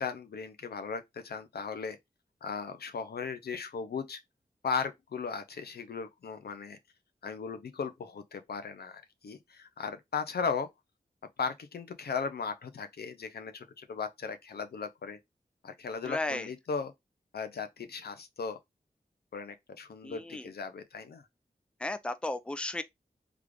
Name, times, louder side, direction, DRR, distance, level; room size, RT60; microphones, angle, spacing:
voice 1, 0.0-2.0 2.4-4.2 4.6-6.8 7.2-10.7 11.4-15.2 15.6-16.9 17.3-18.6 19.3-21.2, left 5 dB, 85° left, 0.5 m, -37 dB
voice 2, 16.0-16.5 20.0-20.5 21.8-22.8, left 2 dB, 5° left, 0.4 m, -34 dB
3.3 x 2.4 x 3.4 m
cardioid pair, 45°, 16 cm